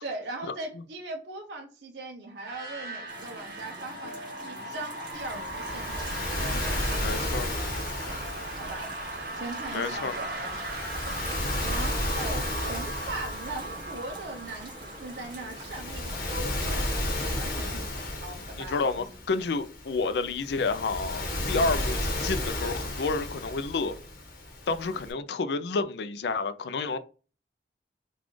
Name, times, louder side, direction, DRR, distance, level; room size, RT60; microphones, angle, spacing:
voice 1, 0.0-8.2 8.6-8.8 9.3-10.6 11.6-16.9 17.3-19.2 21.5-21.7, right 2 dB, 80° right, 0.7 m, -40 dB
sound 1, 2.4-16.1, right 2 dB, 55° right, 1.5 m, -38 dB
sound 2, 3.1-17.6, right 1 dB, 25° right, 1.2 m, -46 dB
Waves surf, 5.1-25.1, left 1 dB, 55° left, 0.9 m, -34 dB
voice 2, 7.0-7.5 9.7-10.1 18.7-23.9 24.7-27.0, left 4 dB, 75° left, 0.4 m, -30 dB
4.0 x 2.4 x 3.1 m
head